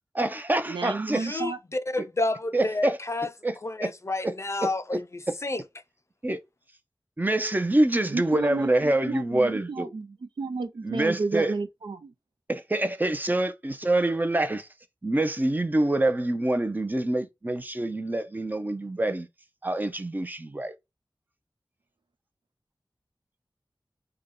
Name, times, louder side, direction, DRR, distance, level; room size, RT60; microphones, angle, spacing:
voice 1, 0.1-1.4 2.5-3.0 3.4-3.9 4.2-4.3 4.6-5.0 6.2-6.4 7.2-9.9 10.8-11.5 12.5-14.7 15.0-19.3 19.6-20.7, right 1 dB, 20° right, 0.6 m, -26 dB
voice 2, 0.7-1.6 8.1-12.1, right 4 dB, 80° right, 0.5 m, -32 dB
voice 3, 1.9-3.3 3.6-5.0 5.4-5.6, left 2 dB, 35° left, 0.4 m, -29 dB
3.6 x 2.2 x 3.5 m
wide cardioid pair, 65°, 8 cm